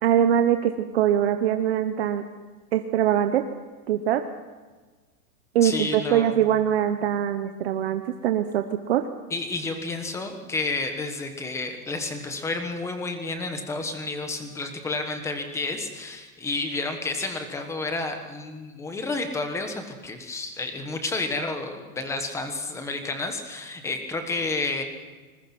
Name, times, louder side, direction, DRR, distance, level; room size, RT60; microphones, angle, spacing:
voice 1, 0.0-2.2 2.7-3.4 3.9-4.2 5.5-9.0, right 10 dB, 40° right, 7 dB, 0.9 m, -22 dB
voice 2, 5.6-6.4 9.3-24.8, left 3 dB, 5° left, 6 dB, 1.2 m, -30 dB
25.5 x 21.0 x 6.0 m, 1.3 s
supercardioid pair, 175°, 46 cm